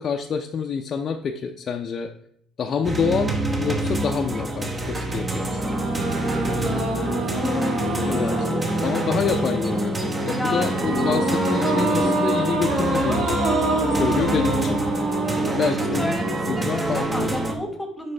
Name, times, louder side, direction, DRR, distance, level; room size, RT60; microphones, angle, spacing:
voice 1, 0.0-2.1 2.6-5.6 8.0-13.3 13.7-14.8 15.4-16.2 16.5-17.4, left 6 dB, 45° left, 2 dB, 0.5 m, -27 dB
sound 1, 2.8-17.5, right 2 dB, 20° right, 0.9 m, -27 dB
sound 2, 5.4-16.8, right 1 dB, 65° right, 2.6 m, -26 dB
voice 2, 7.3-7.8 10.3-10.7 15.3-15.6 16.0-18.1, left 1 dB, 5° left, 4 dB, 1.3 m, -31 dB
8.2 x 5.1 x 3.3 m, 0.67 s
cardioid pair, 115°, 0 cm